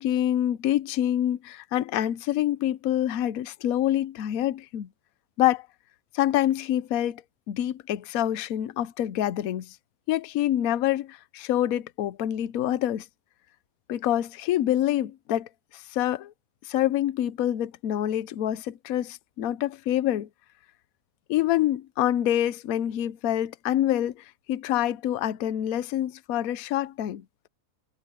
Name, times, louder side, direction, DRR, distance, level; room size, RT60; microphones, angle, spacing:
voice 1, 0.0-4.9 5.4-5.7 6.1-7.2 7.5-9.7 10.1-13.0 13.9-15.5 15.9-16.3 16.7-20.3 21.3-24.1 24.5-27.2, left 12 dB, 65° left, 1.1 m, -26 dB
omnidirectional pair, 1.8 m